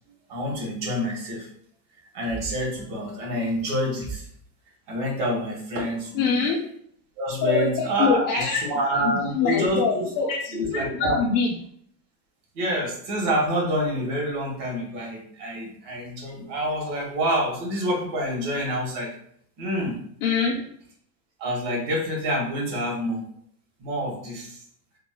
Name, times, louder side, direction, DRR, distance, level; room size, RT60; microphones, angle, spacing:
voice 1, 0.3-1.5 2.1-4.3 4.9-6.4 7.2-10.1 10.5-11.2 12.5-19.1 19.6-19.9 21.4-23.2 23.8-24.6, equal, 65° right, -1 dB, 1.5 m, -27 dB
voice 2, 6.1-6.6 7.4-7.7 8.0-10.6 10.9-11.5 20.2-20.6, left 5 dB, 45° left, -3 dB, 0.7 m, -24 dB
3.8 x 2.3 x 2.2 m, 0.65 s
supercardioid pair, 125°, 48 cm